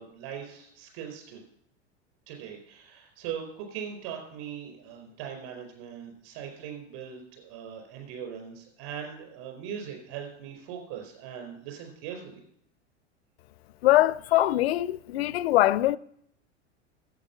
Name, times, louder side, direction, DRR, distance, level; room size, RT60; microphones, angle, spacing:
voice 1, 0.0-1.4 2.3-12.4, right 8 dB, 50° right, 4.5 m, -40 dB
voice 2, 13.8-16.0, left 15 dB, 60° left, 0.4 m, -22 dB
11.0 x 8.2 x 5.6 m
figure-of-eight pair, 85°, 35 cm